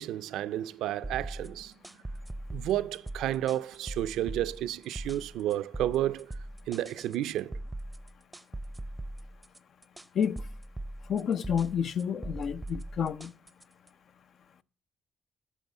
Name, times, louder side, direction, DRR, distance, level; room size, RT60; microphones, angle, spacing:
voice 1, 0.0-1.7 2.5-6.3 6.7-7.6, right 13 dB, 85° right, 0.4 m, -31 dB
sound 1, 1.0-13.9, right 1 dB, 10° right, 0.6 m, -41 dB
voice 2, 11.1-13.3, left 7 dB, 60° left, 0.5 m, -29 dB
9.1 x 6.6 x 7.9 m
cardioid pair, 90°, 0 cm